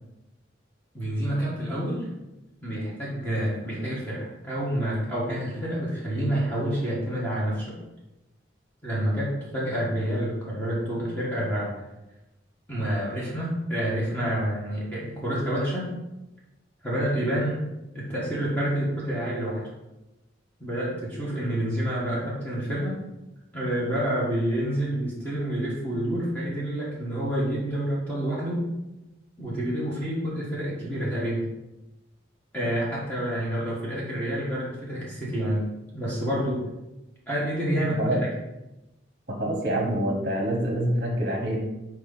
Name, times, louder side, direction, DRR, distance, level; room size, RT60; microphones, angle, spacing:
voice 1, 0.9-2.1 2.6-7.8 8.8-11.8 12.7-15.9 16.8-17.6 17.9-19.6 20.6-23.0 23.5-28.6 29.4-31.4 32.5-35.6 35.9-36.6 37.3-38.2, right 1 dB, 10° left, -8 dB, 1.7 m, -28 dB
voice 2, 37.8-38.2 39.4-41.6, right 1 dB, 40° right, 0 dB, 1.1 m, -26 dB
4.7 x 4.6 x 5.6 m, 0.98 s
head